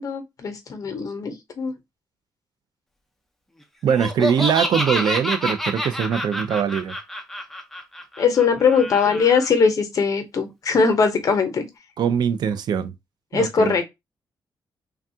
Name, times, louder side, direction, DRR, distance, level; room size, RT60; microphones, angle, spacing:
voice 1, 0.0-1.7 8.2-11.7 13.3-13.8, left 5 dB, 50° left, 0.7 m, -20 dB
voice 2, 3.8-6.9 12.0-12.9 13.3-13.7, right 8 dB, 70° right, 0.4 m, -22 dB
Laughter, 3.9-9.5, equal, 5° left, 0.5 m, -28 dB
3.4 x 2.3 x 2.7 m
wide cardioid pair, 130°, 8 cm